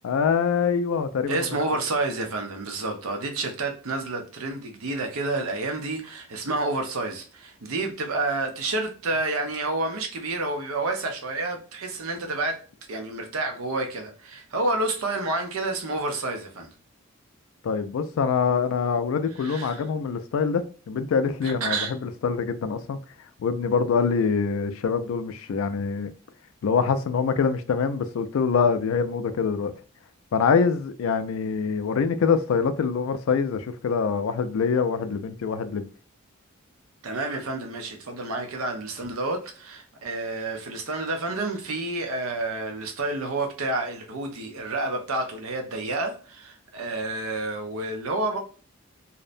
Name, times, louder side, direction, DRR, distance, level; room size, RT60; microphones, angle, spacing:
voice 1, 0.0-1.5 17.6-23.0 23.4-26.1 26.6-29.7 30.3-35.9, left 5 dB, 75° left, 0.3 m, -24 dB
voice 2, 1.3-12.6 12.9-16.7 19.4-19.8 21.4-21.9 37.0-48.4, right 2 dB, 85° right, 0.6 m, -29 dB
2.6 x 2.1 x 2.4 m
head